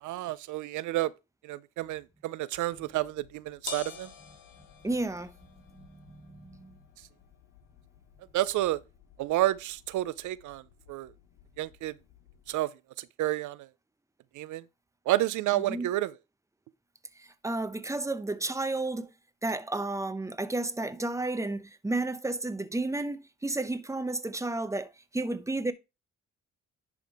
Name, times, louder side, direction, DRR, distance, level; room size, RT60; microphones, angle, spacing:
voice 1, 0.0-1.1 1.4-4.1 8.3-8.8 9.2-10.6 10.9-11.1 11.6-11.9 12.5-12.7 13.0-13.7 14.3-14.6 15.1-16.1, right 15 dB, 75° right, 0.5 m, -30 dB
sound 1, 2.5-12.6, left 7 dB, 85° left, 1.2 m, -50 dB
voice 2, 4.8-5.3 5.7-6.8 15.7-15.9 17.2-19.1 19.4-25.7, right 2 dB, 10° right, 0.8 m, -32 dB
10.5 x 3.6 x 4.7 m
cardioid pair, 90°, 30 cm